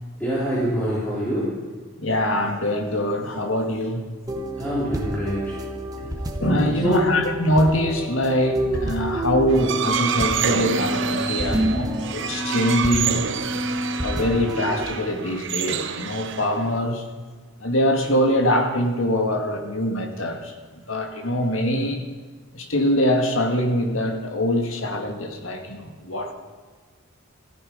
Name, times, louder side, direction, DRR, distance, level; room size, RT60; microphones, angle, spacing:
voice 1, 0.2-1.5 4.6-5.6 6.8-7.2 11.5-11.9, equal, 10° left, -9 dB, 3.5 m, -25 dB
voice 2, 2.0-4.0 6.4-13.2 14.0-17.0 17.6-20.5 20.9-22.0 22.5-26.3, equal, 70° left, 4 dB, 2.0 m, -23 dB
sound 1, 4.3-14.8, equal, 15° right, 1.3 m, -29 dB
sound 2, 9.5-16.8, right 7 dB, 60° right, 0.9 m, -28 dB
14.0 x 13.0 x 5.1 m, 1.5 s
head